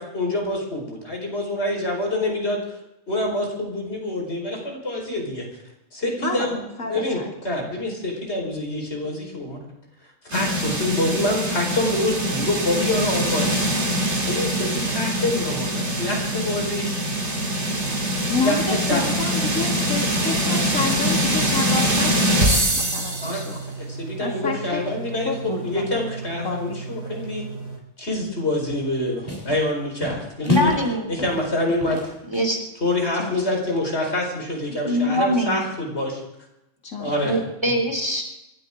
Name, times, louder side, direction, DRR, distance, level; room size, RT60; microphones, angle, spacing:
voice 1, 0.0-2.8 3.1-5.4 5.9-6.6 6.9-7.2 7.4-9.6 10.3-13.6 14.3-17.0 18.4-19.1 23.2-27.4 28.0-30.7 31.1-32.1 32.8-36.2 37.0-37.4 37.7-37.8, left 1 dB, 50° left, 0 dB, 4.9 m, -26 dB
sound 1, 10.3-23.5, equal, 55° right, 3.1 m, -23 dB
sound 2, 13.0-27.8, right 4 dB, 90° right, 4.2 m, -36 dB
voice 2, 18.3-23.6 24.2-24.8 25.3-26.0 26.4-26.8 33.2-33.3 36.8-37.2, left 4 dB, 80° left, 1 dB, 2.5 m, -29 dB
sound 3, 28.7-29.0 29.3-29.7 30.0-30.9 31.2-32.6, equal, 15° left, 3.7 m, -28 dB
voice 3, 30.5-31.1 32.3-32.6 34.8-35.6 37.2-38.2, equal, 20° right, 2 dB, 3.1 m, -23 dB
27.0 x 12.0 x 3.7 m, 0.89 s
omnidirectional pair, 1.4 m